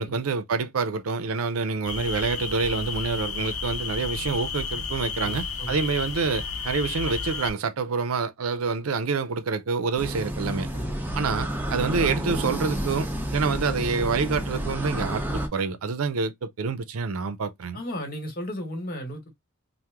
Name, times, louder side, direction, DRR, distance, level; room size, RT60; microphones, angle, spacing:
voice 1, 0.0-10.7 11.1-17.8, right 4 dB, 75° right, 0.5 m, -27 dB
sound 1, 1.8-7.5, left 5 dB, 85° left, 0.7 m, -32 dB
voice 2, 5.2-5.8 10.1-10.2 10.7-10.9 13.4-13.6 17.7-19.3, equal, 45° left, 1.2 m, -35 dB
sound 2, 10.0-15.5, equal, 10° right, 0.5 m, -30 dB
2.9 x 2.1 x 3.4 m
head